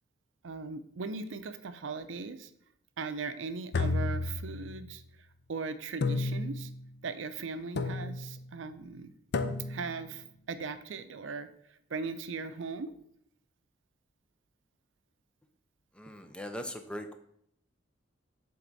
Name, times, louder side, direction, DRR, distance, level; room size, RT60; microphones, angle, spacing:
voice 1, 0.4-2.5 3.0-5.0 5.5-6.7 7.0-9.1 9.7-11.5 11.9-12.9, right 4 dB, 75° right, 11 dB, 0.5 m, -38 dB
sound 1, 3.7-4.9 6.0-6.8 7.8-8.4 9.3-10.0, left 3 dB, 55° left, 0.5 m, -32 dB
voice 2, 15.9-17.1, equal, 5° left, 6 dB, 0.5 m, -40 dB
7.6 x 3.6 x 4.0 m, 0.69 s
head